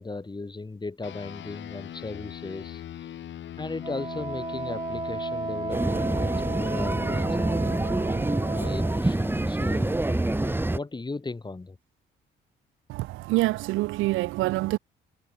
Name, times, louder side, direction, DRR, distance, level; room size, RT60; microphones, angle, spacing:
voice 1, 0.0-3.2 3.6-11.8, left 3 dB, 20° left, 6.9 m, -37 dB
sound 1, 1.0-10.8, left 11 dB, 70° left, 2.1 m, -41 dB
Wind instrument woodwind instrument, 3.8-9.1, right 4 dB, 25° right, 1.9 m, -34 dB
sound 2, 5.7-10.8, right 2 dB, 10° right, 1.7 m, -26 dB
voice 2, 12.9-14.8, right 19 dB, 85° right, 0.4 m, -26 dB
cardioid pair, 90°, 20 cm